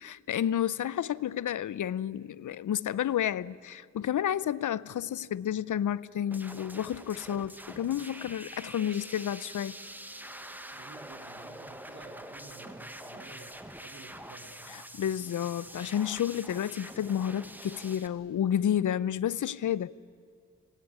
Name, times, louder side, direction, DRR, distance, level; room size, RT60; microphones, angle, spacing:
voice 1, 0.0-9.8 14.9-20.0, left 10 dB, 70° left, 0.6 m, -31 dB
sound 1, 6.3-18.1, right 1 dB, 5° right, 1.3 m, -45 dB
Wind instrument woodwind instrument, 8.6-13.2, right 6 dB, 75° right, 3.3 m, -59 dB
voice 2, 10.7-14.6, right 3 dB, 55° right, 2.8 m, -51 dB
25.5 x 19.5 x 9.7 m
wide cardioid pair, 125°, 31 cm